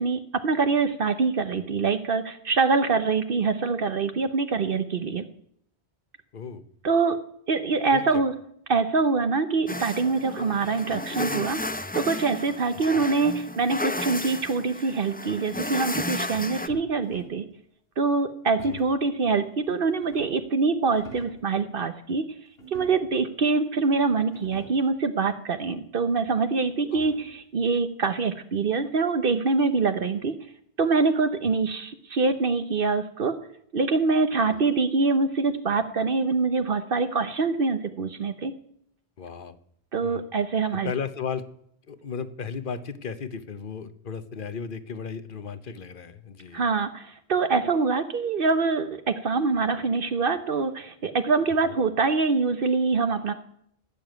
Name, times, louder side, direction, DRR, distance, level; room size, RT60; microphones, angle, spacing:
voice 1, 0.0-5.2 6.8-7.2 7.5-8.3 8.7-17.4 18.0-22.2 22.7-30.3 30.8-33.3 33.7-38.5 39.9-40.9 46.5-53.3, right 4 dB, 60° right, 9 dB, 1.0 m, -24 dB
voice 2, 6.3-6.6 7.9-8.2 12.9-13.0 18.6-18.8 26.8-27.1 34.5-34.6 39.2-39.6 40.0-40.2 40.7-41.4 41.9-46.6 51.6-51.7, left 6 dB, 55° left, 12 dB, 1.2 m, -35 dB
sound 1, 9.7-16.7, left 1 dB, 10° left, 0.5 m, -33 dB
sound 2, 16.7-17.5 18.6-19.0 19.7-20.5 20.9-21.5 22.6-23.3 23.9-24.0 24.2-24.9 26.3-27.5, right 1 dB, 75° left, 3.6 m, -47 dB
17.0 x 7.0 x 9.2 m, 0.70 s
omnidirectional pair, 1.0 m